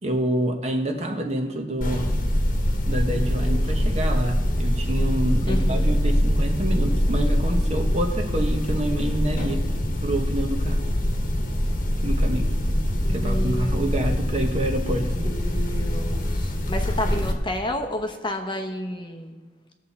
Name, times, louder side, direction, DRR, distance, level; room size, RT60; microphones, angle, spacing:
voice 1, 0.0-2.1 2.8-9.6 10.0-10.8 12.0-12.5 13.1-15.3, right 1 dB, 40° right, 4 dB, 1.1 m, -27 dB
sound 1, 1.8-17.3, equal, 50° left, 1.3 m, -23 dB
voice 2, 5.5-6.0 13.0-13.9 15.2-19.4, left 1 dB, 25° left, 5 dB, 0.9 m, -31 dB
18.5 x 7.3 x 4.2 m, 1.2 s
head